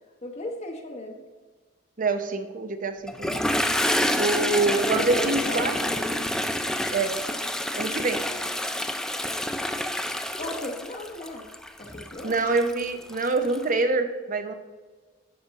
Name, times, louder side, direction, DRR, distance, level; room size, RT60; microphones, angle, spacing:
voice 1, 0.2-1.2 4.7-6.3 10.4-11.4 11.8-12.4, left 2 dB, 35° left, 2 dB, 0.9 m, -36 dB
voice 2, 2.0-3.4 4.2-5.7 6.9-7.2 7.7-8.2 12.2-14.5, right 3 dB, 45° right, 8 dB, 0.7 m, -25 dB
Toilet flush, 3.1-13.6, left 1 dB, 5° left, 0.3 m, -28 dB
12.0 x 5.1 x 4.0 m, 1.4 s
head